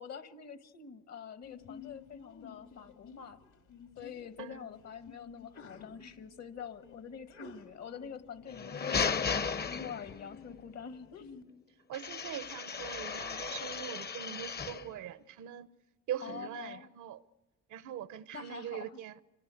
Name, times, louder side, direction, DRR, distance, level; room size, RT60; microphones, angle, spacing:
voice 1, 0.0-3.4 4.0-11.4 16.2-16.9 18.3-19.0, left 7 dB, 60° left, 1.4 m, -46 dB
Sneeze, 1.4-11.4, left 5 dB, 75° left, 2.9 m, -53 dB
sound 1, 8.4-10.4 11.9-14.9, left 6 dB, 35° left, 0.8 m, -35 dB
voice 2, 11.9-15.7 16.1-17.2 17.7-19.2, right 10 dB, 80° right, 0.9 m, -42 dB
26.0 x 24.0 x 8.2 m
cardioid pair, 90°, 30 cm